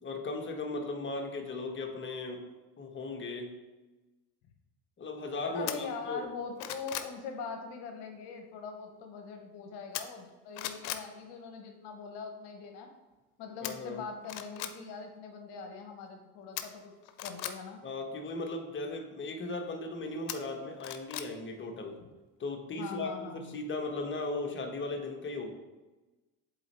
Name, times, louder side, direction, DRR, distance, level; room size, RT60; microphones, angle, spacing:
voice 1, 0.0-2.4 2.8-3.5 5.0-6.2 13.6-14.0 17.8-22.0 22.4-25.5, left 2 dB, 25° left, 3 dB, 1.1 m, -37 dB
voice 2, 5.5-12.9 13.4-16.9 17.2-17.8 22.8-23.6, left 5 dB, 65° left, 4 dB, 1.0 m, -42 dB
sound 1, 5.7-5.8 6.3-7.1 9.9-10.3 10.6-11.1 13.6-13.7 14.2-14.7 16.6-17.5 20.3-21.3 21.7-21.8, left 11 dB, 80° left, 0.6 m, -38 dB
7.5 x 4.0 x 3.3 m, 1.2 s
hypercardioid pair, 70°, 44 cm